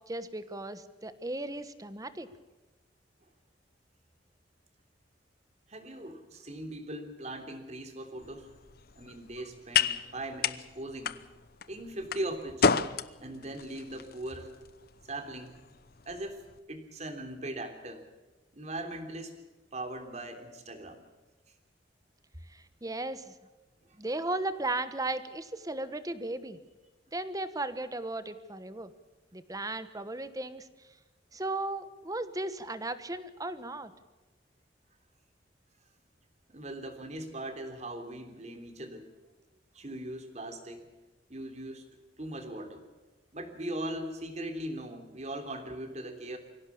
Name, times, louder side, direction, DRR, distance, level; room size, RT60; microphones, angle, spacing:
voice 1, 0.1-2.3 22.5-23.3 24.0-26.6 27.1-28.9 29.3-30.7 31.3-33.9, right 2 dB, 20° right, 12 dB, 1.3 m, -36 dB
voice 2, 5.7-8.5 8.9-11.2 11.7-14.5 15.0-15.6 16.0-16.4 16.7-18.0 18.5-19.4 19.7-21.0 23.8-24.0 36.5-39.1 39.7-40.9 41.3-41.9 42.2-42.8 43.3-46.4, right 1 dB, 40° right, 6 dB, 3.3 m, -40 dB
sound 1, 8.2-16.6, left 6 dB, 55° left, 0.8 m, -33 dB
24.5 x 16.5 x 7.1 m, 1.2 s
head